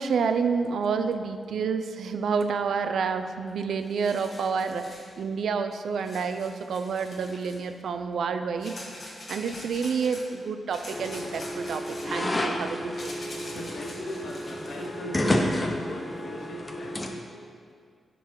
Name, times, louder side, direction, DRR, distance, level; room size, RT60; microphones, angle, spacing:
voice 1, 0.0-8.8 9.3-13.1, right 5 dB, 75° right, 9 dB, 0.4 m, -29 dB
sound 1, 3.5-3.6 3.8-5.1 6.0-7.7 8.6-10.2 10.7-14.9, left 1 dB, 35° left, 1.3 m, -44 dB
sound 2, 10.9-17.1, left 1 dB, 15° left, 0.5 m, -30 dB
voice 2, 13.4-17.2, left 1 dB, 65° left, 1 dB, 1.0 m, -39 dB
11.0 x 3.9 x 4.7 m, 2.1 s
wide cardioid pair, 165°, 0 cm